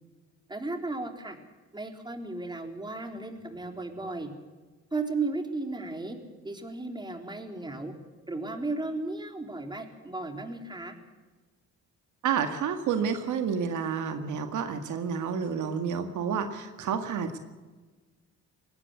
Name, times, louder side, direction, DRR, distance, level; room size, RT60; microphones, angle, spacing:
voice 1, 0.5-1.4 1.7-4.3 4.9-6.2 6.4-7.9 8.3-11.0, right 3 dB, 15° right, 4 dB, 3.8 m, -35 dB
voice 2, 12.2-17.4, right 7 dB, 80° right, 7 dB, 1.9 m, -30 dB
20.5 x 17.5 x 8.2 m, 1.3 s
cardioid pair, 90°, 30 cm